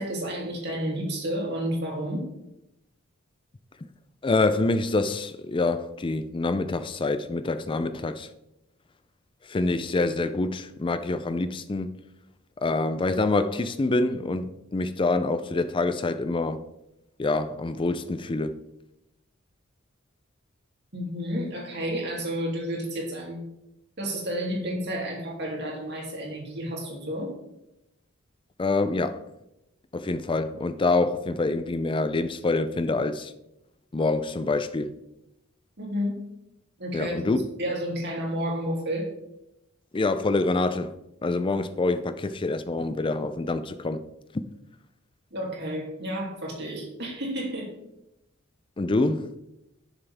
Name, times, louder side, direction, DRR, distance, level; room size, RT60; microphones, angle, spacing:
voice 1, 0.0-2.3 20.9-23.5 24.0-27.3 35.8-36.2 36.8-37.3 37.6-39.1 45.3-47.7, equal, 55° right, 2.8 m, -31 dB
voice 2, 4.2-8.3 9.4-11.9 12.6-16.6 17.2-18.6 28.6-29.3 29.9-33.3 33.9-34.9 36.9-37.4 39.9-40.9 41.2-44.0 48.8-49.3, left 3 dB, 25° left, 0.4 m, -26 dB
11.0 x 6.8 x 3.5 m
head